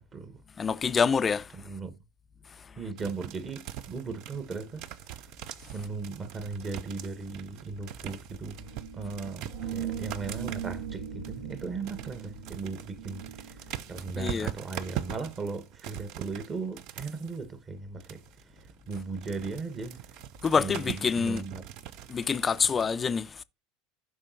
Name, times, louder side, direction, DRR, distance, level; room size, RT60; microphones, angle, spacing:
voice 1, 0.0-0.4 1.5-1.9 2.8-5.3 5.7-20.1 20.6-21.6, right 4 dB, 25° right, 1.3 m, -38 dB
voice 2, 0.6-1.5 14.2-14.5 20.4-21.4 22.1-23.4, left 5 dB, 25° left, 0.4 m, -26 dB
sound 1, 3.0-17.4 18.0-22.8, right 12 dB, 50° right, 0.5 m, -43 dB
sound 2, 8.4-14.4, right 8 dB, 65° right, 1.2 m, -39 dB
15.0 x 5.5 x 2.8 m
figure-of-eight pair, 75°, 0 cm